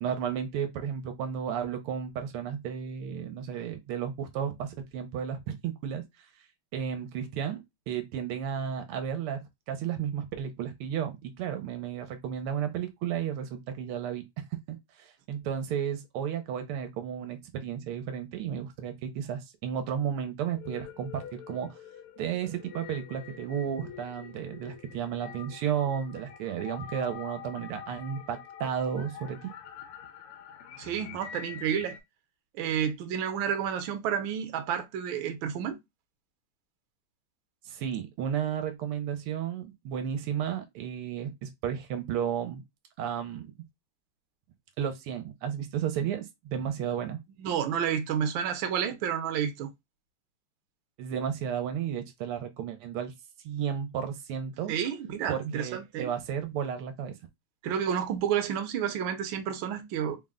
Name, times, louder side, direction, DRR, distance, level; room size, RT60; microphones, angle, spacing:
voice 1, 0.0-6.0 6.7-9.4 9.7-21.7 22.2-29.5 37.7-42.6 43.0-43.5 44.8-47.2 51.0-53.1 53.5-54.7 55.3-57.2, right 8 dB, 85° right, 1.6 m, -33 dB
sound 1, 20.5-32.0, left 8 dB, 90° left, 1.6 m, -46 dB
voice 2, 30.8-32.0 32.5-35.8 47.4-49.7 54.7-56.1 57.6-60.2, right 8 dB, 70° right, 1.4 m, -30 dB
3.9 x 2.1 x 3.6 m
omnidirectional pair, 2.4 m